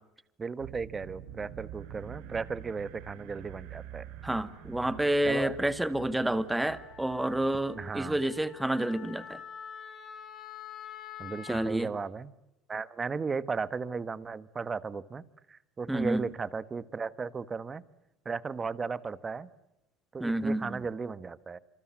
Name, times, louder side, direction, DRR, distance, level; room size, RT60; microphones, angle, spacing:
voice 1, 0.4-4.0 5.2-5.6 7.7-8.2 11.2-12.3 12.7-15.2 15.5-17.8 18.2-19.5 20.1-21.6, right 5 dB, 20° right, 16 dB, 1.2 m, -35 dB
sound 1, 0.6-8.7, right 11 dB, 75° right, 5.8 m, -47 dB
voice 2, 4.2-9.4 11.5-11.9 15.9-16.3 20.2-20.8, right 1 dB, 5° right, 13 dB, 1.7 m, -29 dB
Wind instrument woodwind instrument, 6.5-11.7, left 8 dB, 35° left, 6.9 m, -46 dB
27.0 x 26.5 x 7.5 m, 0.90 s
cardioid pair, 130°, 0 cm